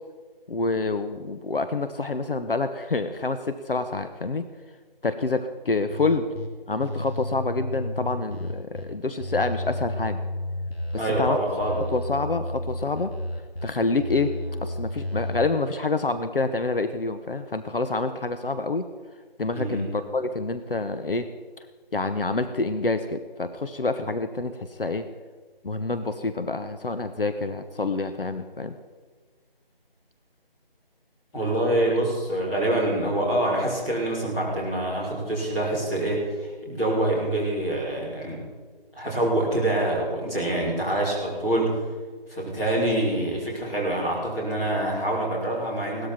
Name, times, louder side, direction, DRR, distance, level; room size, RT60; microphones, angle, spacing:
voice 1, 0.5-4.4 5.0-6.3 6.7-10.2 11.2-11.4 11.9-13.1 13.6-14.3 14.6-18.9 19.4-21.3 21.9-25.1 25.6-28.8 31.9-32.0, left 3 dB, 65° left, 10 dB, 1.0 m, -27 dB
sound 1, 5.9-6.5 6.8-8.8 9.2-11.3 11.6-13.6 14.0-15.5, left 1 dB, 80° left, 2.9 m, -32 dB
voice 2, 11.0-11.8 19.5-19.9 31.3-38.4 38.9-41.7 42.3-46.1, right 1 dB, 10° left, -11 dB, 3.7 m, -25 dB
18.0 x 13.0 x 4.4 m, 1.5 s
figure-of-eight pair, 170°, 30 cm